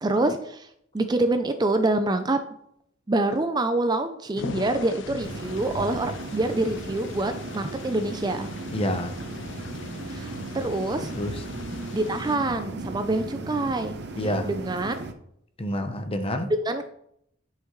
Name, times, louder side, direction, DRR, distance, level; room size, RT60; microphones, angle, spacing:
voice 1, 0.0-0.7 0.9-2.4 3.1-8.5 10.1-11.1 11.9-14.0 14.4-15.0 16.5-16.8, right 2 dB, 20° right, 0.4 m, -26 dB
sound 1, 4.4-12.4, left 5 dB, 60° left, 0.4 m, -41 dB
sound 2, 5.2-15.1, right 2 dB, 55° right, 0.8 m, -36 dB
voice 2, 8.7-9.2 11.1-11.4 14.2-14.5 15.6-16.5, left 1 dB, 25° left, 0.7 m, -28 dB
10.0 x 5.7 x 3.1 m
head